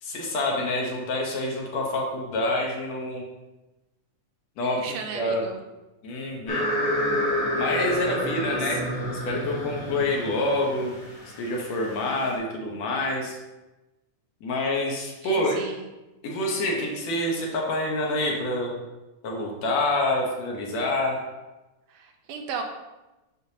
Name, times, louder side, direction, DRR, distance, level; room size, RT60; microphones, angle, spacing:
voice 1, 0.0-3.3 4.6-4.8 5.1-5.4 6.0-6.7 7.5-8.8 9.3-10.9 11.4-13.4 14.4-15.6 16.2-18.8 19.2-21.3, left 1 dB, 70° left, -1 dB, 2.0 m, -27 dB
voice 2, 4.6-5.6 8.2-8.8 15.2-15.9 21.9-22.6, right 6 dB, 85° right, 3 dB, 2.3 m, -36 dB
sound 1, 6.5-12.3, equal, 35° left, 1.0 m, -29 dB
6.8 x 6.2 x 2.8 m, 1.1 s
omnidirectional pair, 3.5 m